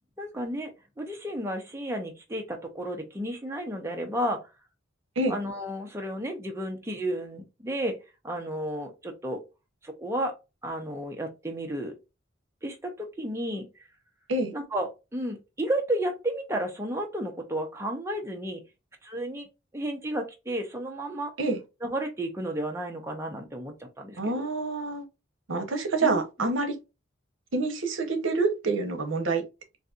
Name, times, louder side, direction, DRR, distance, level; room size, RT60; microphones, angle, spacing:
voice 1, 0.2-4.5 5.3-8.0 8.2-9.4 9.8-10.3 10.6-11.9 12.6-13.7 14.5-18.6 19.0-19.5 19.7-21.3 21.8-24.4 26.0-26.2, right 1 dB, 15° right, 0.6 m, -32 dB
voice 2, 24.2-25.1 25.5-26.8 27.5-29.4, right 3 dB, 75° right, 0.8 m, -27 dB
4.0 x 2.6 x 2.4 m
head